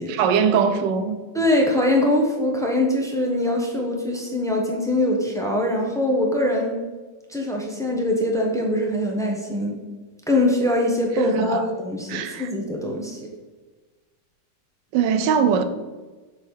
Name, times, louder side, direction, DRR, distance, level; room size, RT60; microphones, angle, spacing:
voice 1, 0.1-1.2 11.3-11.6 12.1-12.5 14.9-15.6, right 7 dB, 75° right, 1.2 m, -21 dB
voice 2, 1.3-6.7 7.3-9.7 10.3-13.2, left 1 dB, 5° left, 0.6 m, -22 dB
6.6 x 3.7 x 6.3 m
omnidirectional pair, 2.0 m